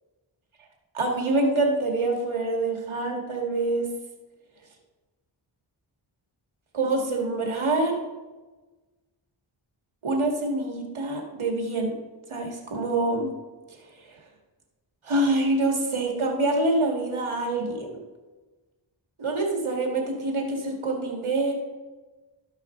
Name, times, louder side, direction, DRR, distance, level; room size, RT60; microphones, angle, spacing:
voice 1, 0.9-3.9 6.7-8.0 10.0-11.9 12.3-13.3 15.0-17.9 19.2-21.5, right 2 dB, 85° right, 1 dB, 1.8 m, -25 dB
13.0 x 4.8 x 4.4 m, 1.2 s
cardioid pair, 55°, 48 cm